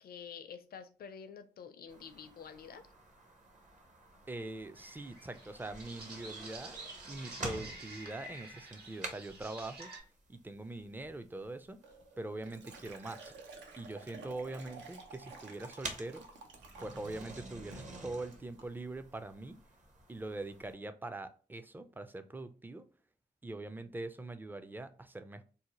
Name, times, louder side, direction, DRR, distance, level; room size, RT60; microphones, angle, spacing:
voice 1, 0.0-2.9, left 7 dB, 55° left, 0.5 m, -48 dB
sound 1, 1.9-20.7, right 2 dB, 40° right, 0.8 m, -50 dB
voice 2, 4.3-6.8 7.1-9.9 10.3-11.8 12.2-13.3 13.8-16.3 16.8-19.6 20.1-22.9 23.4-25.4, right 2 dB, 10° right, 0.4 m, -43 dB
sound 2, 4.8-10.0, right 2 dB, 60° right, 1.0 m, -50 dB
Liquid, 11.8-17.4 17.7-18.0 18.3-18.7, right 3 dB, 80° right, 0.5 m, -52 dB
2.6 x 2.1 x 3.0 m
supercardioid pair, 45°, 18 cm